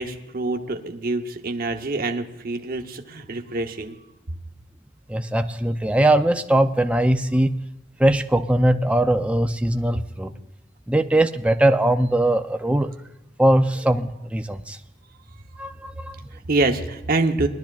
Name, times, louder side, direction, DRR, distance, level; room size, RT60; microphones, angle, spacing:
voice 1, 0.0-4.0 16.3-17.5, right 2 dB, 50° right, 5 dB, 0.9 m, -26 dB
voice 2, 5.1-7.5 8.0-10.3 10.9-12.9 13.4-14.8 15.6-16.2, right 1 dB, 5° right, 7 dB, 0.5 m, -20 dB
20.5 x 12.0 x 2.4 m, 0.96 s
head